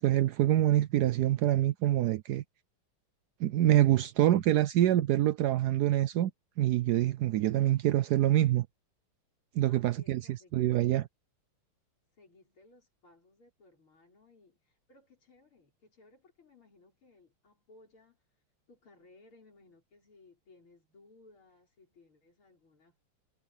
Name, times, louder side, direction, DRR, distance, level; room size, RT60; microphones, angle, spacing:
voice 1, 0.0-2.4 3.4-6.3 6.6-8.7 9.6-10.2 10.5-11.0, right 13 dB, 85° right, 0.8 m, -25 dB
voice 2, 9.6-10.9 12.1-23.0, left 3 dB, 75° left, 6.8 m, -61 dB
omnidirectional pair, 2.3 m